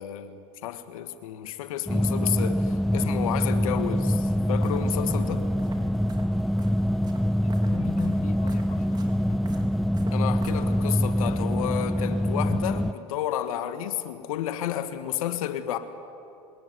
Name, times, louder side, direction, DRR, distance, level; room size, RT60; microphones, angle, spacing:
voice 1, 0.0-5.5 10.1-15.8, left 11 dB, 85° left, 1.6 m, -31 dB
sound 1, 1.9-12.9, equal, ahead, 0.5 m, -25 dB
sound 2, 4.1-11.4, right 2 dB, 25° right, 4.1 m, -48 dB
voice 2, 7.4-9.7, left 10 dB, 45° left, 1.1 m, -41 dB
26.0 x 19.0 x 9.7 m
hypercardioid pair, 90°, 18 cm